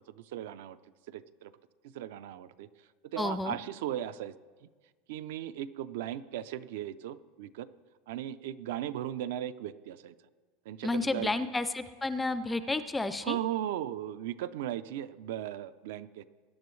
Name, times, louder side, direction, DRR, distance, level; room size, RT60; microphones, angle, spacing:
voice 1, 0.1-0.8 1.1-1.5 1.8-2.7 3.0-4.3 5.1-7.7 8.1-10.1 10.7-11.3 13.2-16.2, right 11 dB, 65° right, 15 dB, 0.4 m, -37 dB
voice 2, 3.2-3.6 10.8-13.4, left 2 dB, 5° left, 12 dB, 0.3 m, -31 dB
20.5 x 10.5 x 3.2 m, 1.5 s
supercardioid pair, 180°, 0 cm